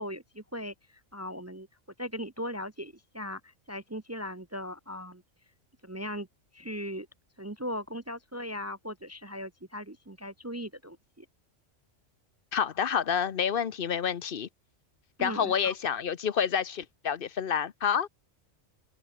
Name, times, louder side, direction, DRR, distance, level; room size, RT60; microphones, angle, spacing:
voice 1, 0.0-1.7 2.0-5.2 5.8-6.3 6.5-7.1 7.4-11.3 15.2-15.7, equal, 25° right, 0.4 m, -38 dB
voice 2, 12.5-14.5 15.2-18.1, left 7 dB, 50° left, 0.9 m, -28 dB
open air
omnidirectional pair, 1.3 m